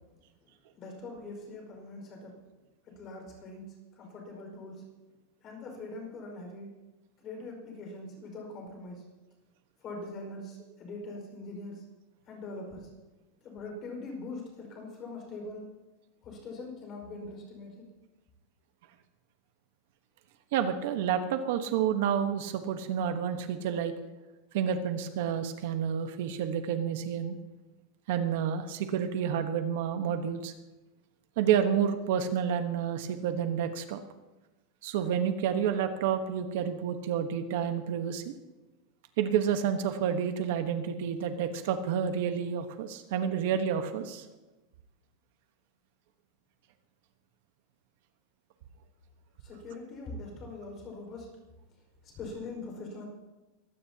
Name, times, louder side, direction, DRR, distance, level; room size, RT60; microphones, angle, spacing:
voice 1, 0.8-2.3 2.8-4.8 5.4-6.7 7.2-9.0 9.8-11.8 12.3-12.9 13.4-15.7 16.2-17.8 49.4-51.3 52.0-53.1, left 2 dB, 30° left, 2 dB, 5.1 m, -42 dB
voice 2, 20.5-23.9 24.5-27.4 28.1-30.5 31.4-34.0 34.8-38.3 39.2-44.2, right 8 dB, 65° right, 8 dB, 1.2 m, -29 dB
22.5 x 16.5 x 2.9 m, 1.1 s
supercardioid pair, 165°, 0 cm